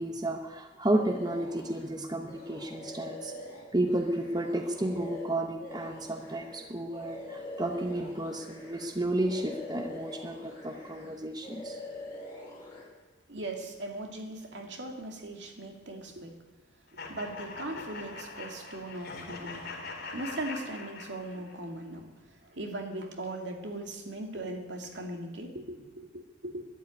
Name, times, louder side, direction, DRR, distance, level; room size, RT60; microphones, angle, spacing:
voice 1, 0.0-3.3 3.7-11.8, right 1 dB, 20° right, 5 dB, 0.9 m, -32 dB
sound 1, 0.9-1.9 2.3-8.9 9.1-11.1 11.4-12.8, left 2 dB, 15° left, 5.2 m, -44 dB
voice 2, 13.3-16.4 17.1-19.7 20.1-26.6, right 1 dB, 70° right, 3 dB, 2.4 m, -39 dB
sound 2, 17.0-21.6, left 3 dB, 55° left, 3.6 m, -42 dB
12.5 x 11.5 x 9.7 m, 1.2 s
head